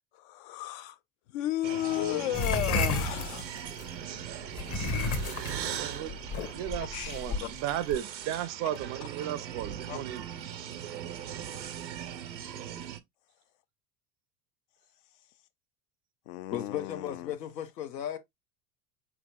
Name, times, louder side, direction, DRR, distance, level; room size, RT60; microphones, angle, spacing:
voice 1, 0.1-1.0 1.3-3.9 6.9-7.5 9.9-10.0 16.3-17.4, left 13 dB, 50° left, 0.5 m, -34 dB
sound 1, 1.6-13.0, right 9 dB, 90° right, 0.6 m, -40 dB
sound 2, 2.3-3.9 4.5-7.9, left 3 dB, 30° left, 1.0 m, -31 dB
voice 2, 5.2-10.3, right 12 dB, 35° right, 0.4 m, -35 dB
voice 3, 16.5-18.2, left 10 dB, 75° left, 0.8 m, -35 dB
4.5 x 3.8 x 2.2 m
figure-of-eight pair, 75°, 50 cm